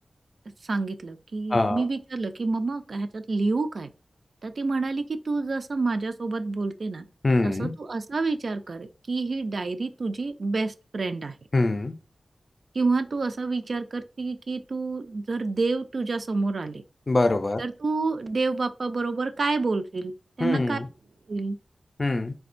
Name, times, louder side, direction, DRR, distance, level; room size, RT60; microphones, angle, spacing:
voice 1, 0.7-3.9 4.4-7.0 7.4-11.3 12.7-16.8 17.6-20.8 21.3-21.6, right 3 dB, 65° right, 0.3 m, -28 dB
voice 2, 1.5-1.8 7.2-7.7 11.5-11.9 17.1-17.6 20.4-20.9 22.0-22.3, left 2 dB, 40° left, 0.4 m, -23 dB
4.2 x 2.2 x 2.5 m
wide cardioid pair, 100°, 0 cm